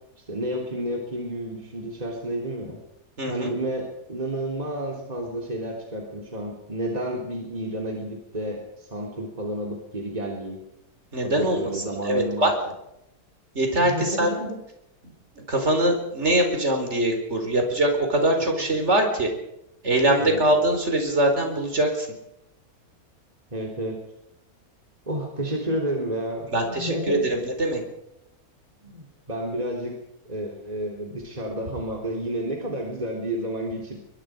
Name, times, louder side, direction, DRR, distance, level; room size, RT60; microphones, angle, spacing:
voice 1, 0.3-2.8 3.3-10.6 11.2-12.5 13.8-14.6 18.4-18.5 20.2-20.4 23.5-24.0 25.1-27.2 28.8-30.0 30.3-34.0, right 1 dB, 25° right, 0 dB, 3.6 m, -31 dB
voice 2, 3.2-3.5 11.1-12.5 13.5-14.3 15.5-19.3 19.8-22.1 26.5-27.8, right 1 dB, 45° right, 4 dB, 4.6 m, -23 dB
23.0 x 22.5 x 5.1 m, 0.83 s
omnidirectional pair, 1.7 m